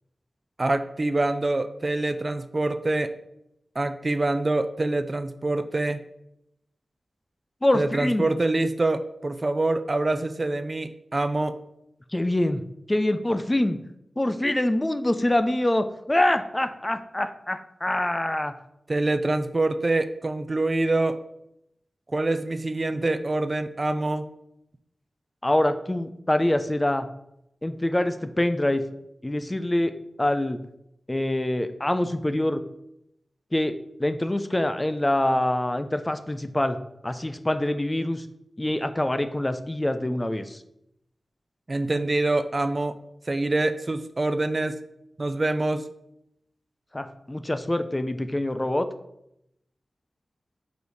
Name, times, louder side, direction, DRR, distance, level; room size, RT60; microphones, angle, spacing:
voice 1, 0.6-3.1 3.8-6.0 7.7-11.5 18.9-21.2 22.1-24.2 41.7-43.0 43.3-44.8 45.2-45.8, right 2 dB, 40° right, 10 dB, 0.4 m, -25 dB
voice 2, 7.6-8.3 12.1-12.6 12.9-13.8 14.2-18.5 25.4-27.1 27.6-28.8 29.2-29.9 30.2-30.6 31.1-32.6 33.5-36.8 37.0-38.2 38.6-40.6 46.9-48.9, left 1 dB, 20° left, 10 dB, 0.5 m, -25 dB
5.1 x 4.0 x 4.7 m, 0.80 s
cardioid pair, 55°, 0 cm